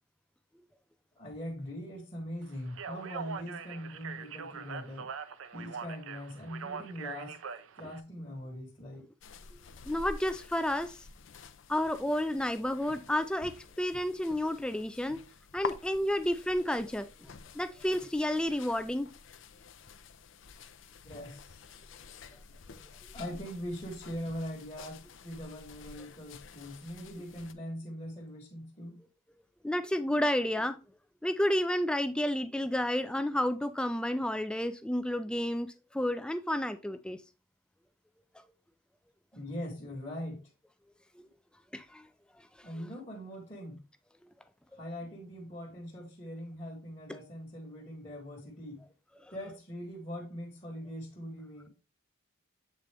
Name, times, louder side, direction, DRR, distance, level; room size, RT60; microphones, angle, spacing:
voice 1, 1.2-5.1 5.5-7.4 7.8-9.0 21.0-21.6 23.1-29.0 39.3-40.4 42.6-43.8 44.8-48.8 49.3-51.7, equal, 25° left, 1.2 m, -41 dB
Speech, 2.7-8.0, right 6 dB, 70° right, 0.5 m, -42 dB
sound 1, 9.2-27.5, left 5 dB, 60° left, 0.5 m, -49 dB
voice 2, 9.9-11.0 11.7-15.2 15.5-17.3 17.5-19.1 29.6-30.8 31.2-37.2 41.7-42.1, left 1 dB, 5° left, 0.3 m, -31 dB
7.5 x 3.8 x 3.4 m
head